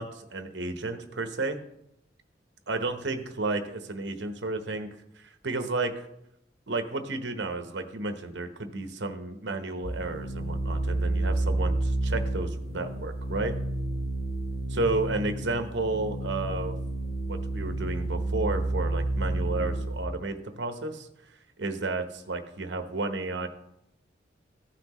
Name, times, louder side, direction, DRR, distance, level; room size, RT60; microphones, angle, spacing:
voice 1, 0.0-1.6 2.7-4.9 5.2-6.1 6.7-13.5 14.7-16.7 17.3-21.1 21.6-23.5, right 3 dB, 65° right, 7 dB, 1.0 m, -32 dB
sound 1, 9.8-20.1, right 2 dB, 50° left, 0.8 m, -30 dB
15.0 x 5.9 x 3.0 m, 0.81 s
head